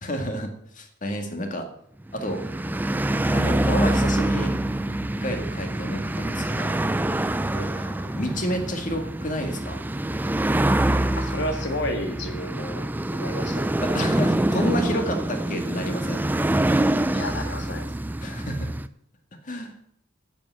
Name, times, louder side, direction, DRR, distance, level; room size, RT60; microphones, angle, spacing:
voice 1, 0.0-1.7 2.1-2.4 3.3-4.5 5.2-6.8 7.7-9.8 13.9-16.3 18.2-18.7 19.4-19.7, equal, 40° left, 4 dB, 2.0 m, -30 dB
sound 1, 2.1-18.9, right 1 dB, 10° right, 0.4 m, -25 dB
voice 2, 11.2-12.8 13.1-14.1 14.6-14.7 17.1-17.9, left 1 dB, 60° left, 5 dB, 1.9 m, -32 dB
9.2 x 7.7 x 8.7 m, 0.70 s
head